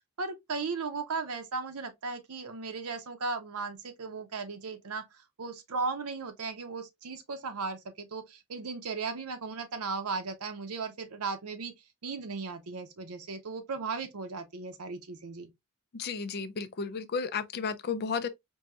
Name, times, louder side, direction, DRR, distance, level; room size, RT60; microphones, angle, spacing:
voice 1, 0.2-5.0 5.4-11.7 12.0-15.5, right 4 dB, 90° right, 0.7 m, -36 dB
voice 2, 15.9-18.3, left 5 dB, 45° left, 0.4 m, -33 dB
4.5 x 2.7 x 2.3 m
head